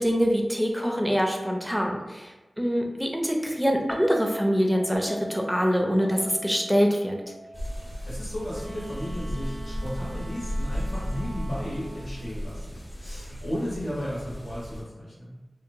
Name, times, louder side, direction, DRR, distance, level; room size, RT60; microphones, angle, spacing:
voice 1, 0.0-7.2, equal, 5° right, 1 dB, 0.4 m, -24 dB
Chink clink, 3.9-10.2, right 1 dB, 60° left, 0.5 m, -43 dB
sound 1, 7.5-14.8, equal, 40° left, 0.9 m, -35 dB
voice 2, 8.1-15.4, equal, 80° left, -8 dB, 1.0 m, -34 dB
Wind instrument woodwind instrument, 8.5-12.2, right 1 dB, 85° right, 0.3 m, -43 dB
2.8 x 2.1 x 2.6 m, 1.1 s
wide cardioid pair, 60°, 0 cm